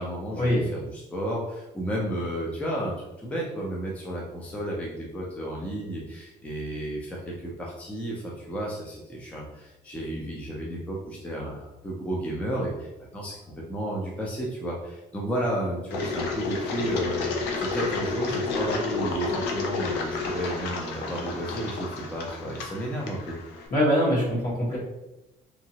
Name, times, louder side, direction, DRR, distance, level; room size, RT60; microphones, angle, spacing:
voice 1, 0.0-23.4, right 1 dB, 10° left, -4 dB, 0.5 m, -32 dB
Engine, 15.9-23.7, left 4 dB, 85° left, 0.6 m, -31 dB
voice 2, 23.7-24.8, equal, 55° left, -6 dB, 1.5 m, -23 dB
2.9 x 2.6 x 2.8 m, 0.96 s
cardioid pair, 110°, 17 cm